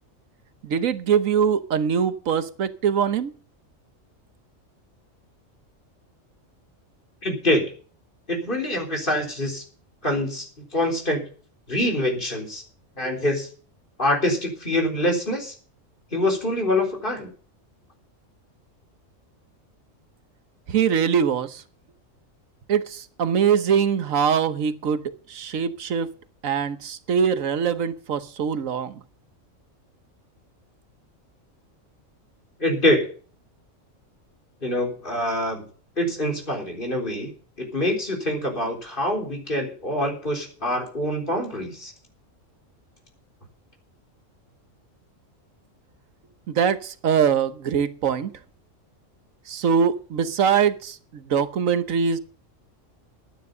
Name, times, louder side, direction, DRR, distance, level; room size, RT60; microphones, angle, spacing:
voice 1, 0.6-3.3 20.7-21.6 22.7-26.1 26.4-29.0 46.5-48.3 49.5-52.2, right 7 dB, 90° right, 1.4 m, -23 dB
voice 2, 7.2-7.6 8.3-9.6 10.0-11.2 11.7-12.6 13.0-13.5 14.0-15.5 16.1-17.3 32.6-33.1 34.6-35.7 36.0-37.3 37.6-41.9, left 1 dB, 40° left, 4.0 m, -25 dB
12.0 x 9.8 x 6.7 m
omnidirectional pair, 1.3 m